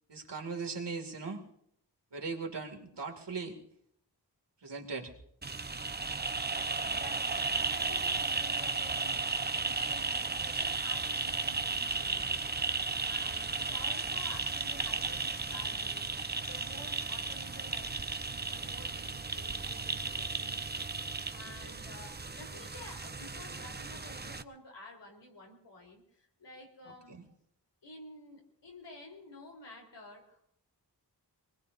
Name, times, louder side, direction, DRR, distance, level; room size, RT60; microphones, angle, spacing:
voice 1, 0.1-1.4 2.1-3.6 4.6-5.1, right 4 dB, 75° right, 1 dB, 2.8 m, -38 dB
sound 1, 5.4-24.4, right 3 dB, 25° right, 0.7 m, -34 dB
voice 2, 6.7-16.1 16.4-27.2 27.8-30.4, left 2 dB, 90° left, 0 dB, 4.2 m, -52 dB
24.5 x 20.5 x 2.8 m, 0.72 s
wide cardioid pair, 65°, 42 cm